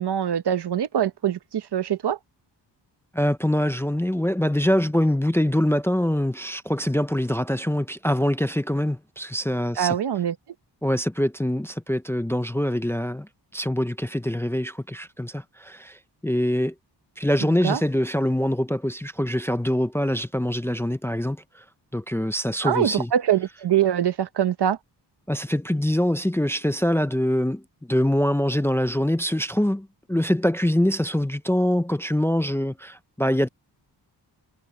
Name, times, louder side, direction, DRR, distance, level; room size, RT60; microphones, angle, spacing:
voice 1, 0.0-2.2 9.8-10.4 17.6-17.8 22.6-24.8, right 9 dB, 65° right, 1.0 m, -23 dB
voice 2, 3.1-10.0 10.8-16.7 17.2-21.6 21.9-23.1 25.3-27.6 27.9-33.5, left 1 dB, 5° left, 0.6 m, -24 dB
wide cardioid pair, 130°, 43 cm